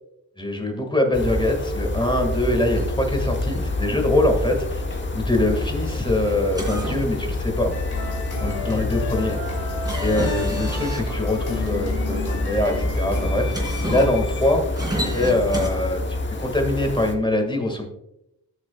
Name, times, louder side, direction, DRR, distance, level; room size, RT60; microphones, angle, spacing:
voice 1, 0.4-4.8 5.1-7.7 8.4-9.4 10.0-14.6 15.1-17.8, left 1 dB, 10° left, 3 dB, 1.9 m, -23 dB
sound 1, 1.1-17.1, left 2 dB, 30° left, 1.0 m, -27 dB
sound 2, 3.5-15.7, right 1 dB, 10° right, 3.1 m, -35 dB
sound 3, 7.7-14.6, left 4 dB, 65° left, 2.2 m, -34 dB
12.5 x 6.4 x 2.3 m, 0.84 s
cardioid pair, 70°, 41 cm